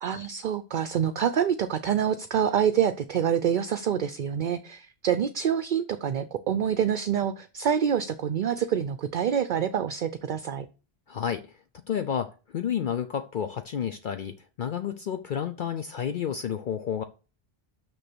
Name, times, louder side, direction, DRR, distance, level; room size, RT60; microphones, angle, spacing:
voice 1, 0.0-10.7, right 8 dB, 55° right, 11 dB, 0.7 m, -26 dB
voice 2, 11.1-11.4 11.9-17.0, left 8 dB, 60° left, 9 dB, 0.7 m, -30 dB
6.6 x 6.1 x 6.0 m, 0.35 s
omnidirectional pair, 1.1 m